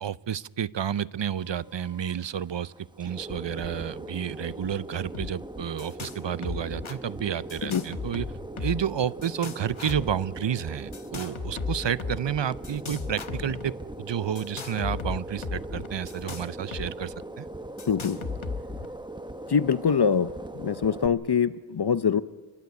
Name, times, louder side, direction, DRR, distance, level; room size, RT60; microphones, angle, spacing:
voice 1, 0.0-8.3 8.6-17.5, right 9 dB, 65° right, 19 dB, 0.6 m, -31 dB
sound 1, 1.4-21.1, right 1 dB, 10° right, 1.2 m, -40 dB
sound 2, 5.1-5.3 5.6-6.2 6.4-7.0 7.5-8.9 9.2-10.1 10.9-12.2 12.6-13.7 14.4-16.9 17.1-17.2 17.8-18.9, left 5 dB, 75° left, 1.4 m, -35 dB
voice 2, 17.9-18.2 19.5-22.2, left 6 dB, 55° left, 15 dB, 0.7 m, -24 dB
30.0 x 12.0 x 9.3 m, 1.2 s
wide cardioid pair, 55°, 48 cm